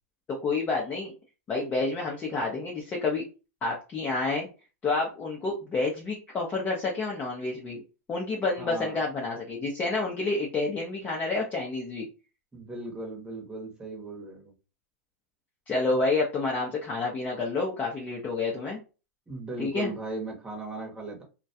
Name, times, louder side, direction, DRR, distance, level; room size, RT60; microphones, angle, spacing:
voice 1, 0.3-1.1 1.5-3.2 3.6-4.5 4.8-7.8 8.1-12.1 15.7-18.8 19.6-19.9, left 3 dB, 20° left, 0.6 m, -29 dB
voice 2, 8.6-9.0 12.5-14.5 19.3-21.2, right 2 dB, 10° right, 1.0 m, -37 dB
2.2 x 2.2 x 2.7 m
hypercardioid pair, 120°, 8 cm